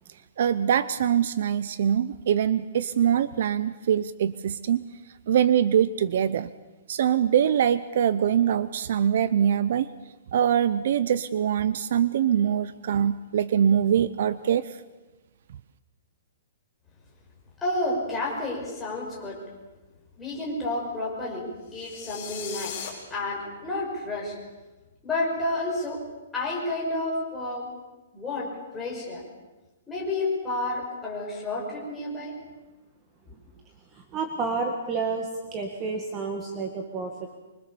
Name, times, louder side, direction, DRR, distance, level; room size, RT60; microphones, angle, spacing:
voice 1, 0.4-4.8 5.3-6.5 6.9-9.9 10.3-14.7, right 9 dB, 50° right, 15 dB, 0.7 m, -23 dB
voice 2, 17.6-19.4 20.2-21.5 21.7-22.9 23.1-24.4 25.0-26.0 26.3-27.7 28.1-29.2 29.9-32.3, left 2 dB, 5° left, -4 dB, 5.7 m, -30 dB
sound 1, 21.7-22.9, left 8 dB, 30° left, 5.3 m, -37 dB
voice 3, 33.9-37.4, right 4 dB, 15° right, 2 dB, 1.7 m, -30 dB
25.0 x 23.5 x 7.1 m, 1.2 s
hypercardioid pair, 175°, 0 cm